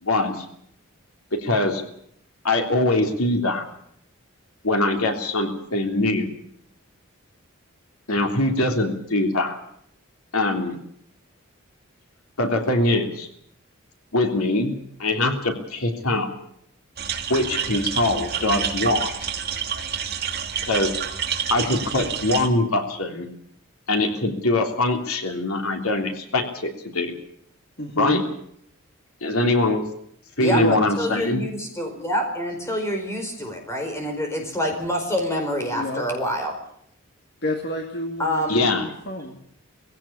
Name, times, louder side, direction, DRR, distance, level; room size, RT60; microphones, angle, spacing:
voice 1, 0.0-0.4 1.3-1.8 2.4-3.6 4.6-6.3 8.1-9.6 10.3-10.7 12.4-13.3 14.1-16.3 17.3-19.3 20.6-20.9 21.5-23.3 23.9-27.1 28.0-28.2 29.2-29.8 30.4-31.4 38.5-38.8, left 2 dB, 85° left, 5 dB, 3.3 m, -23 dB
sound 1, 17.0-22.5, right 7 dB, 45° right, 2.7 m, -28 dB
voice 2, 27.8-28.2 30.5-30.8 35.7-36.0 37.4-39.4, equal, 50° left, 3 dB, 2.4 m, -29 dB
voice 3, 30.4-36.5 38.2-38.6, equal, 15° left, 3 dB, 4.9 m, -27 dB
20.5 x 16.5 x 8.6 m, 0.69 s
head